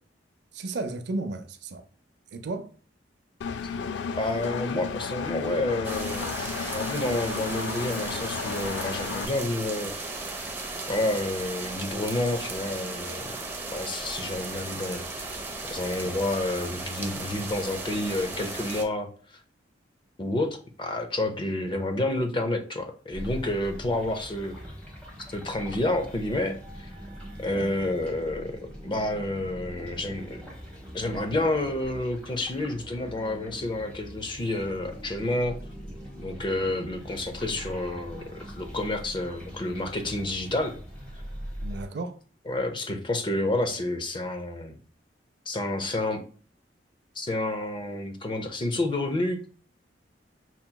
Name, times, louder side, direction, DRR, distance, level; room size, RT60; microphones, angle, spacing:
voice 1, 0.5-1.9 2.3-2.7 27.5-27.7 41.6-42.2, right 2 dB, 70° right, 0.5 m, -34 dB
Engine, 3.4-9.3, left 6 dB, 70° left, 0.3 m, -33 dB
voice 2, 4.1-9.9 10.9-13.2 13.7-15.4 15.7-19.1 20.2-24.6 25.3-26.9 27.4-30.4 30.9-35.6 36.2-40.8 42.5-44.7 45.5-46.2 47.2-49.5, left 1 dB, 30° left, 0.6 m, -29 dB
sound 1, 5.8-18.8, right 2 dB, 15° right, 0.6 m, -36 dB
sound 2, 23.1-41.8, equal, 5° left, 1.2 m, -42 dB
5.6 x 2.9 x 2.2 m
head